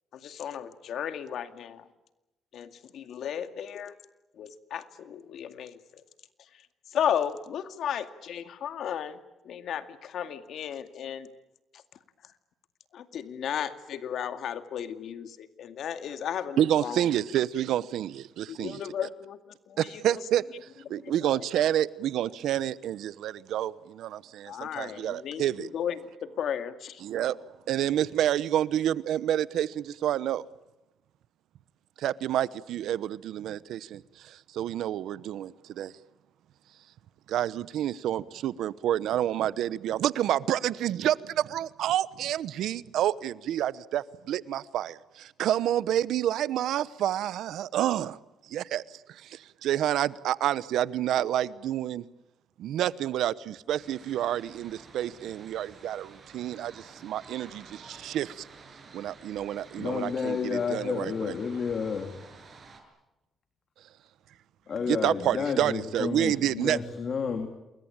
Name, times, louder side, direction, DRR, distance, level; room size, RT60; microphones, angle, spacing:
voice 1, 0.1-1.9 2.5-3.9 4.4-6.0 6.5-9.2 9.4-11.3 12.9-17.1 18.5-20.2 20.9-21.4 24.5-27.0, left 9 dB, 70° left, 2.2 m, -35 dB
voice 2, 16.6-18.8 19.8-25.7 27.0-27.4 27.7-30.4 32.0-35.9 37.3-48.2 48.5-52.0 52.6-58.5 58.9-61.3 64.9-66.8, right 11 dB, 80° right, 0.9 m, -29 dB
sound 1, 53.8-62.8, right 4 dB, 45° right, 7.4 m, -51 dB
voice 3, 59.8-62.2 64.7-67.5, left 6 dB, 50° left, 3.0 m, -31 dB
28.0 x 22.0 x 8.9 m
cardioid pair, 90°, 0 cm